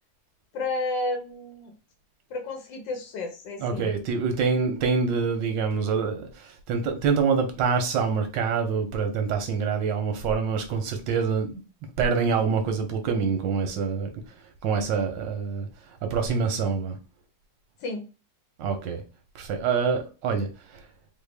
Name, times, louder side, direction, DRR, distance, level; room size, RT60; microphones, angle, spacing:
voice 1, 0.5-1.7 2.3-3.9 17.8-18.1, left 2 dB, 85° left, 1.4 m, -31 dB
voice 2, 3.6-11.6 12.0-14.1 14.6-15.7 16.0-17.0 18.6-19.0 19.3-20.8, right 5 dB, 90° right, 1.5 m, -26 dB
4.0 x 2.1 x 3.3 m
omnidirectional pair, 1.9 m